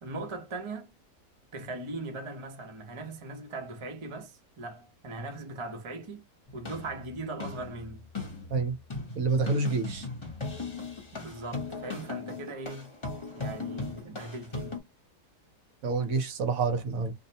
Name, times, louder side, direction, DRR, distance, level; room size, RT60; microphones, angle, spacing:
voice 1, 0.0-0.9 1.5-6.3 6.5-8.1 11.1-12.9 13.3-14.8, right 2 dB, 45° right, 0.4 m, -39 dB
sound 1, 6.5-14.8, left 3 dB, 25° left, 0.7 m, -38 dB
voice 2, 9.1-10.1 15.8-17.1, right 4 dB, 65° right, 1.0 m, -28 dB
2.7 x 2.0 x 2.7 m
omnidirectional pair, 1.7 m